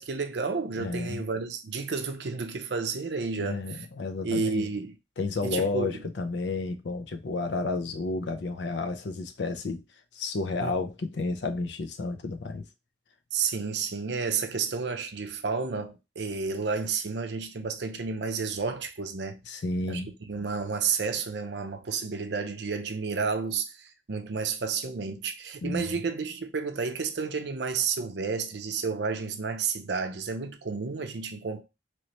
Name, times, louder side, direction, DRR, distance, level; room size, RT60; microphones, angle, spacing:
voice 1, 0.0-3.9 4.2-5.0 5.4-5.9 10.6-10.7 13.3-19.4 19.9-20.0 20.3-31.6, right 5 dB, 65° right, 0.5 m, -31 dB
voice 2, 0.8-1.2 3.4-4.7 5.2-9.8 10.1-12.7 19.5-20.1 25.6-26.0, left 3 dB, 70° left, 0.5 m, -31 dB
3.1 x 3.0 x 2.9 m
head